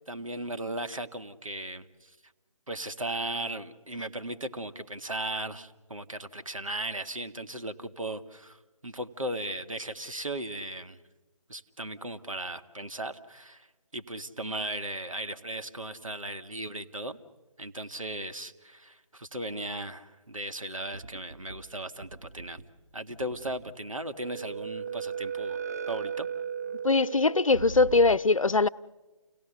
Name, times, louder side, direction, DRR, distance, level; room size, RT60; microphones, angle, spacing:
voice 1, 0.1-2.1 2.7-8.6 8.8-11.0 11.5-13.7 13.9-17.2 17.6-22.6 22.9-25.6 25.9-26.3, right 1 dB, 80° right, 1.7 m, -37 dB
sound 1, 20.9-21.7 22.0-22.8 23.1-23.8 24.2-28.2, right 7 dB, 30° right, 1.0 m, -37 dB
voice 2, 26.8-28.7, left 3 dB, 75° left, 0.6 m, -22 dB
29.5 x 17.5 x 6.9 m
figure-of-eight pair, 155°, 17 cm